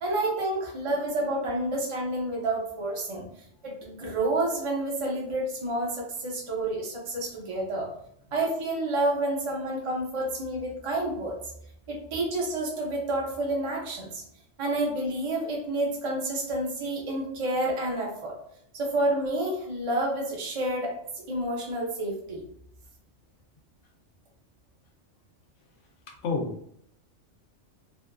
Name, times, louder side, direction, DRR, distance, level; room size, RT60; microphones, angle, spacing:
voice 1, 0.0-3.2 3.6-7.9 8.3-11.3 11.9-14.2 14.6-18.3 18.7-20.9 21.3-22.4, right 1 dB, 35° right, -3 dB, 0.5 m, -29 dB
voice 2, 26.1-26.8, left 4 dB, 80° left, 1 dB, 0.9 m, -32 dB
2.7 x 2.3 x 2.3 m, 0.70 s
omnidirectional pair, 1.3 m